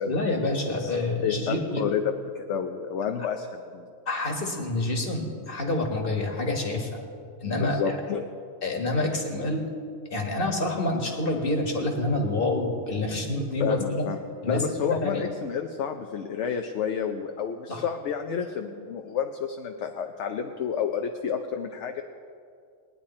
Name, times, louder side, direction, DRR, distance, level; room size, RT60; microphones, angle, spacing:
voice 1, 0.1-1.8 4.1-7.0 7.4-8.0 8.6-9.7 10.1-14.0 14.4-15.3 17.7-17.8, left 2 dB, 45° left, 2 dB, 1.8 m, -27 dB
voice 2, 1.2-3.9 7.6-8.2 13.6-14.2 14.5-22.0, left 7 dB, 70° left, 5 dB, 1.0 m, -30 dB
20.0 x 10.5 x 4.3 m, 2.2 s
omnidirectional pair, 1.3 m